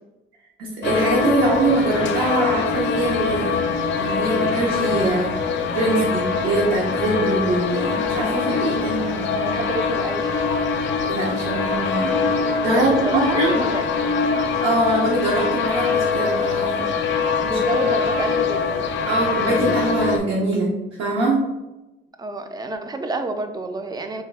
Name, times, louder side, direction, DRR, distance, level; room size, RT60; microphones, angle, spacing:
voice 1, 0.6-3.6 4.0-5.3 5.7-9.3 11.1-12.2 12.6-13.5 14.6-16.9 17.5-17.6 19.1-20.7 21.0-21.4, right 2 dB, 80° right, -4 dB, 0.8 m, -23 dB
sound 1, 0.8-20.2, left 5 dB, 65° left, 0.4 m, -23 dB
voice 2, 8.8-10.6 12.7-13.9 17.4-19.1 22.2-24.2, right 2 dB, 20° right, 7 dB, 0.4 m, -29 dB
3.6 x 2.2 x 3.2 m, 1.0 s
cardioid pair, 90°, 20 cm